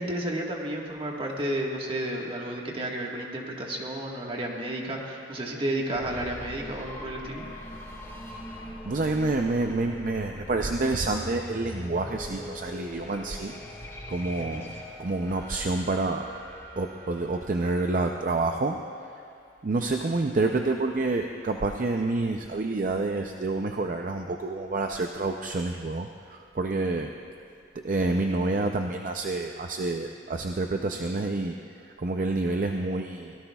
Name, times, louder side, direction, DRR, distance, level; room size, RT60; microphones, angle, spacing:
voice 1, 0.0-7.5, right 1 dB, 30° right, -1 dB, 1.5 m, -32 dB
sound 1, 5.9-18.6, equal, 15° left, 1.8 m, -41 dB
voice 2, 8.8-13.6 14.1-14.7 15.0-16.3 16.8-18.8 19.6-27.1 27.7-31.5 31.8-33.3, right 2 dB, 45° right, 3 dB, 0.5 m, -28 dB
23.5 x 17.5 x 2.3 m, 2.4 s
head